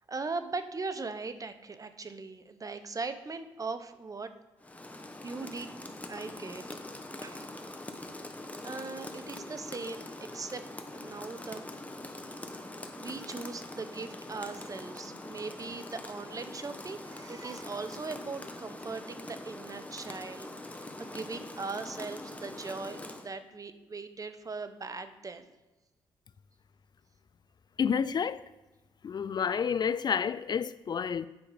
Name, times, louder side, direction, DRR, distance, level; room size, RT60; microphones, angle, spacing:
voice 1, 0.1-4.3 5.2-5.7 6.1-6.6 7.2-7.6 8.6-10.6 10.9-11.6 13.0-25.4, right 3 dB, 35° right, 0.9 m, -39 dB
Rain, 4.6-23.3, left 1 dB, 15° left, 1.2 m, -43 dB
voice 2, 27.8-28.4 29.0-31.3, left 7 dB, 45° left, 0.4 m, -29 dB
9.1 x 5.7 x 5.1 m
supercardioid pair, 60°, 10 cm